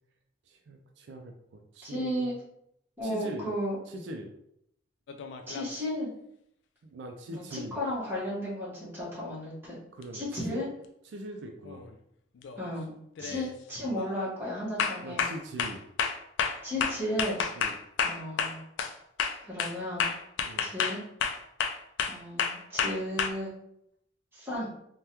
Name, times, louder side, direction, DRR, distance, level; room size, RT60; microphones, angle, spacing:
voice 1, 0.5-2.3 3.0-3.5 3.9-4.3 6.8-7.8 9.9-10.6 11.0-11.9 13.2-13.4 15.0-15.8 17.6-17.7 20.5-20.7, right 1 dB, 70° right, 3 dB, 0.3 m, -42 dB
voice 2, 1.8-2.3 3.0-3.8 5.5-6.1 7.3-9.8 10.1-10.7 12.6-15.3 16.6-17.4 18.0-18.6 19.4-20.1 20.6-21.0 22.1-23.5 24.3-24.7, equal, 10° right, -8 dB, 1.1 m, -34 dB
sound 1, 5.1-5.8 10.0-10.1 11.6-11.9 12.4-12.7 13.2-13.5 14.0-14.2 14.8-18.9 19.2-23.3, left 6 dB, 75° left, 0.3 m, -30 dB
3.4 x 2.2 x 2.8 m, 0.76 s
head